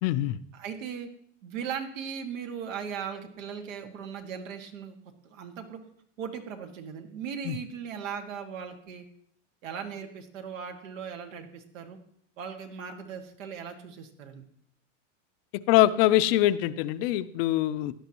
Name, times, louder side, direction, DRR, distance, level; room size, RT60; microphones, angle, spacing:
voice 1, 0.0-0.4 7.5-7.6 15.7-17.9, left 14 dB, 50° left, 13 dB, 0.6 m, -23 dB
voice 2, 0.5-1.1 1.4-5.0 5.2-5.8 6.2-9.0 9.6-12.0 12.4-14.4, right 7 dB, 85° right, 5 dB, 2.1 m, -38 dB
16.5 x 11.0 x 3.0 m, 0.67 s
supercardioid pair, 145°, 38 cm